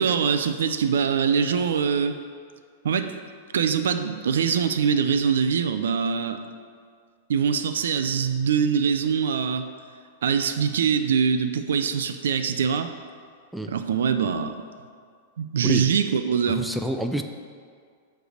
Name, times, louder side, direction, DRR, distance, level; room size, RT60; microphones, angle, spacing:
voice 1, 0.0-2.2 2.8-3.1 3.5-6.4 7.3-9.7 10.2-12.9 13.7-14.6 15.4-16.7, right 6 dB, 90° right, 9 dB, 0.5 m, -23 dB
voice 2, 16.5-17.2, equal, ahead, 5 dB, 0.3 m, -28 dB
7.8 x 3.4 x 6.4 m, 2.1 s
supercardioid pair, 150°, 0 cm